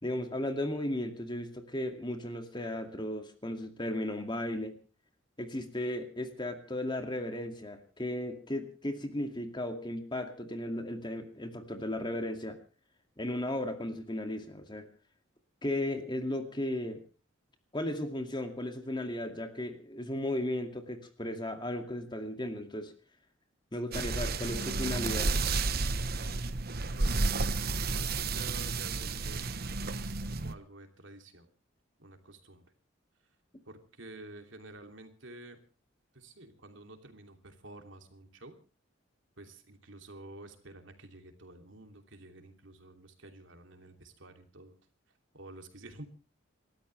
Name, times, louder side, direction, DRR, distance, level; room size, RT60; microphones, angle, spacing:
voice 1, 0.0-4.7 5.4-12.6 13.2-14.9 15.6-17.0 17.7-22.9 23.7-25.4, left 1 dB, 25° left, 6 dB, 2.3 m, -35 dB
sound 1, 23.9-30.5, right 3 dB, 50° right, 1.1 m, -31 dB
voice 2, 26.9-31.5 32.0-32.6 33.6-35.6 36.1-38.5 39.4-44.7 45.3-46.1, right 2 dB, 70° right, 5 dB, 2.9 m, -50 dB
29.0 x 13.5 x 3.3 m, 0.36 s
head